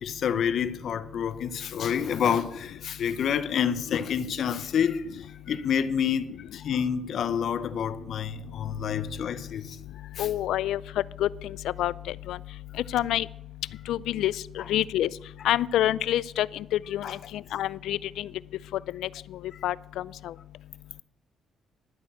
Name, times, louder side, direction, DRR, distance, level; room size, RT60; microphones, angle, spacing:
voice 1, 0.0-10.3 14.6-14.7 17.0-17.2 19.5-19.6, left 8 dB, 65° left, 0.8 m, -28 dB
voice 2, 10.2-10.8 11.2-11.9 12.3-12.4 12.9-13.3 13.9-14.3 14.7-15.1 15.4-17.1 17.3-18.3 19.6-19.7, left 13 dB, 85° left, 0.3 m, -26 dB
11.5 x 6.2 x 8.4 m
cardioid pair, 90°, 0 cm